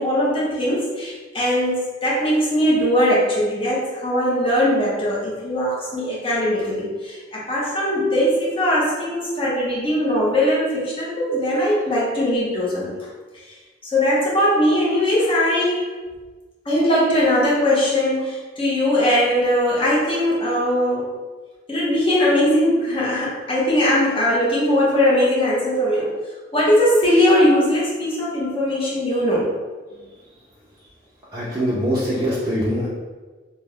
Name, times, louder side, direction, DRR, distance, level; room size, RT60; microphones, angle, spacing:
voice 1, 0.0-13.1 13.8-15.9 16.6-21.1 21.7-26.1 26.5-29.5, left 1 dB, 30° left, -6 dB, 0.8 m, -20 dB
voice 2, 31.3-32.9, equal, 20° right, -10 dB, 0.5 m, -23 dB
3.1 x 2.1 x 3.5 m, 1.3 s
head